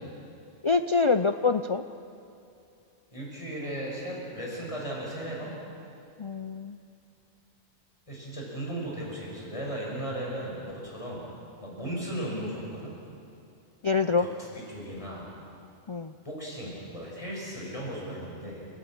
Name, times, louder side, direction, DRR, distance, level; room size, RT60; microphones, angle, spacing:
voice 1, 0.6-1.8 6.2-6.8 13.8-14.3 15.9-16.1, left 4 dB, 45° left, 8 dB, 0.4 m, -25 dB
voice 2, 3.1-5.5 8.1-11.3 11.6-12.9 14.2-15.3 16.2-18.7, right 1 dB, 25° left, -3 dB, 5.5 m, -36 dB
29.5 x 13.0 x 8.7 m, 2.7 s
omnidirectional pair, 1.2 m